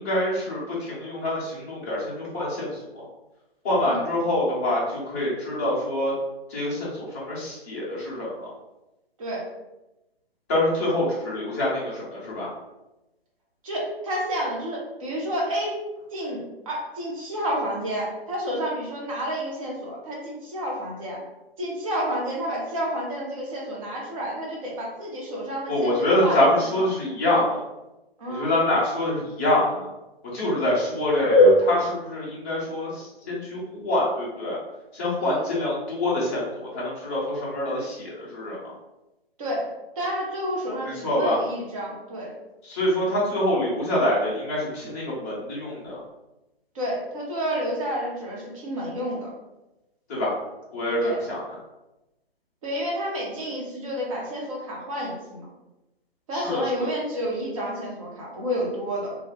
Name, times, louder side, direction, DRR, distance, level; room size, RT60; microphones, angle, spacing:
voice 1, 0.0-3.1 3.6-6.1 6.5-8.5 10.5-12.5 25.7-27.6 28.3-29.9 30.3-34.6 34.9-38.7 40.9-41.4 42.6-46.0 50.1-50.3 50.7-51.4 56.3-56.9, left 1 dB, 15° left, -6 dB, 0.5 m, -25 dB
voice 2, 13.6-21.2 21.6-26.4 26.8-26.9 28.2-28.5 35.2-35.4 39.4-39.7 40.0-42.3 46.7-49.3 51.0-51.2 52.6-55.5 56.3-59.2, equal, 35° right, -3 dB, 0.8 m, -30 dB
2.3 x 2.1 x 3.2 m, 0.97 s
figure-of-eight pair, 130°, 31 cm